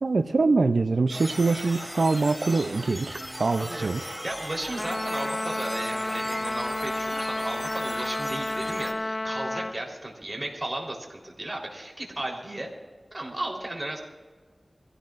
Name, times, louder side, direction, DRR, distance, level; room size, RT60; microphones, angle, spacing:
voice 1, 0.0-4.0, right 3 dB, 85° right, 7 dB, 0.5 m, -24 dB
sound 1, 1.1-8.9, equal, 5° left, 2.7 m, -38 dB
voice 2, 3.6-12.7 13.1-14.0, right 1 dB, 30° right, -1 dB, 3.8 m, -35 dB
Trumpet, 4.8-9.8, left 2 dB, 40° left, 0.4 m, -31 dB
24.0 x 16.0 x 2.5 m, 1.4 s
wide cardioid pair, 60°, 0 cm